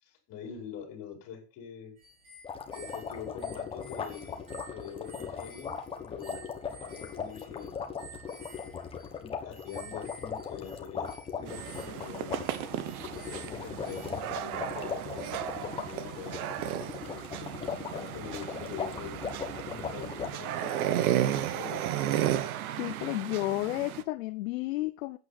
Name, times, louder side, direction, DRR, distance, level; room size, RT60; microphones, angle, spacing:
voice 1, 0.0-2.0 2.7-4.4 4.7-7.8 9.2-12.4 13.1-16.4 17.1-19.2 19.6-21.8, left 8 dB, 35° left, 5.0 m, -44 dB
sound 1, 2.0-14.4, right 3 dB, 45° right, 6.1 m, -52 dB
sound 2, 2.4-20.3, left 6 dB, 10° left, 1.3 m, -39 dB
sound 3, 11.5-24.0, right 11 dB, 70° right, 1.4 m, -34 dB
voice 2, 22.7-25.2, left 19 dB, 60° left, 0.8 m, -32 dB
12.5 x 8.8 x 4.3 m
supercardioid pair, 165°, 45 cm